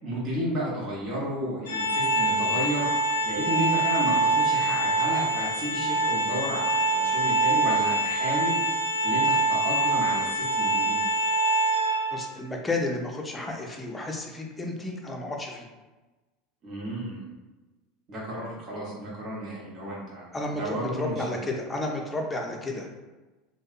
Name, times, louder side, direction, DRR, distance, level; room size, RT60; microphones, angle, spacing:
voice 1, 0.0-2.9 3.2-8.6 9.0-11.0 16.6-17.2 18.1-21.3, right 1 dB, 45° right, -6 dB, 0.8 m, -32 dB
Organ, 1.7-12.4, right 2 dB, 80° left, 0.3 m, -25 dB
voice 2, 12.1-15.7 20.3-22.9, left 2 dB, 15° left, 1 dB, 0.5 m, -32 dB
2.6 x 2.1 x 2.4 m, 1.2 s
hypercardioid pair, 95°, 0 cm